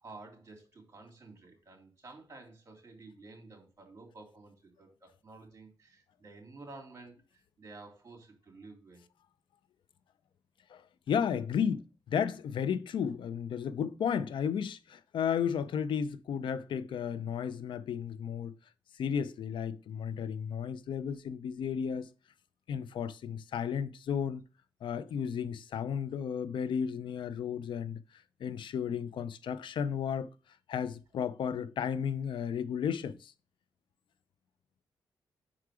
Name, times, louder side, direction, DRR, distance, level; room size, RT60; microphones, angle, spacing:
voice 1, 0.0-9.0, right 3 dB, 35° right, 2.9 m, -52 dB
voice 2, 10.7-18.5 18.9-22.1 22.7-24.4 24.8-28.0 28.4-30.3 30.7-33.3, left 7 dB, 75° left, 0.5 m, -33 dB
5.8 x 4.8 x 4.8 m
cardioid pair, 90°, 8 cm